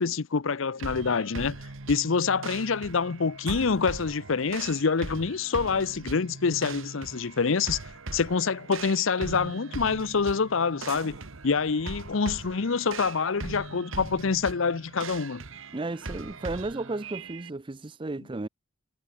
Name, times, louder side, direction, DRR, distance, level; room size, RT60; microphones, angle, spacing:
voice 1, 0.0-1.6 1.9-7.8 8.1-11.1 11.4-15.4, left 5 dB, 65° left, 0.7 m, -26 dB
sound 1, 0.8-17.5, right 3 dB, 65° right, 1.5 m, -40 dB
sound 2, 1.4-7.9 8.3-8.5 10.9-15.5 15.8-16.0, right 4 dB, 85° right, 1.2 m, -51 dB
voice 2, 15.7-18.5, right 2 dB, 25° right, 0.5 m, -34 dB
head